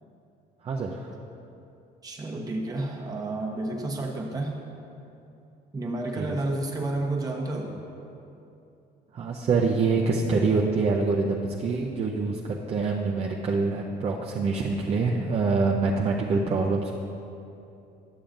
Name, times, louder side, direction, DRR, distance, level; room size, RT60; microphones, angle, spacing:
voice 1, 0.6-1.1 6.2-6.3 9.1-16.9, right 4 dB, 40° right, -2 dB, 0.6 m, -25 dB
voice 2, 2.0-4.6 5.7-7.8, right 2 dB, 20° right, -1 dB, 1.0 m, -30 dB
11.5 x 6.9 x 2.6 m, 2.7 s
cardioid pair, 110°, 17 cm